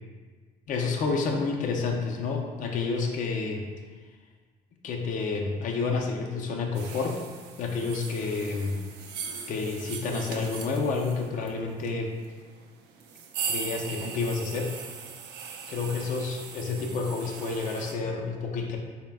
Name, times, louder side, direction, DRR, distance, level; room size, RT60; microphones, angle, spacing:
voice 1, 0.7-3.7 4.8-7.2 7.6-8.8 9.5-12.1 13.5-14.7 15.7-18.8, left 4 dB, 50° left, 1 dB, 0.4 m, -29 dB
sound 1, 6.7-17.9, right 6 dB, 80° right, 0.4 m, -39 dB
3.9 x 2.1 x 3.3 m, 1.5 s
cardioid pair, 110°, 17 cm